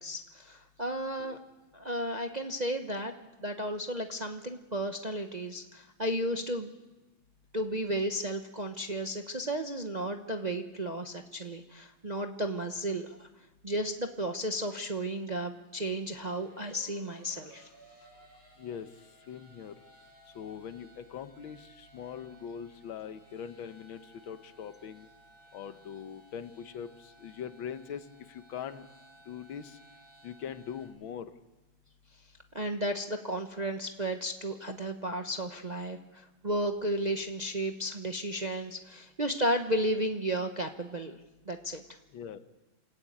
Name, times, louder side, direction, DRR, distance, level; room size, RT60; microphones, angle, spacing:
voice 1, 0.0-1.4 1.7-3.1 3.4-6.7 7.5-13.3 13.6-17.7 32.5-41.2 41.5-41.8, right 1 dB, 35° right, 5 dB, 0.7 m, -33 dB
sound 1, 15.9-30.9, right 1 dB, 5° right, 7.9 m, -59 dB
voice 2, 19.3-19.8 20.4-24.0 24.3-25.1 25.5-28.9 29.3-29.8 30.2-31.3 42.1-42.4, left 8 dB, 80° left, 10 dB, 1.8 m, -42 dB
28.0 x 13.5 x 8.8 m, 1.1 s
omnidirectional pair, 2.2 m